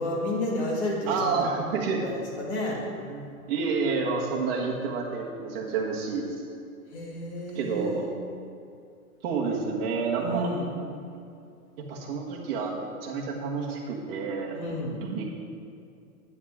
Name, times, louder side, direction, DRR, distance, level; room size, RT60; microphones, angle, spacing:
voice 1, 0.0-1.4 2.0-2.8 6.9-8.1 10.2-10.7 14.5-15.0, left 1 dB, 45° left, -3 dB, 2.4 m, -31 dB
voice 2, 1.1-2.0 3.1-6.3 7.5-8.1 9.2-10.5 11.9-15.2, right 4 dB, 40° right, -2 dB, 1.8 m, -29 dB
10.5 x 9.7 x 3.7 m, 2.5 s
hypercardioid pair, 160°, 45 cm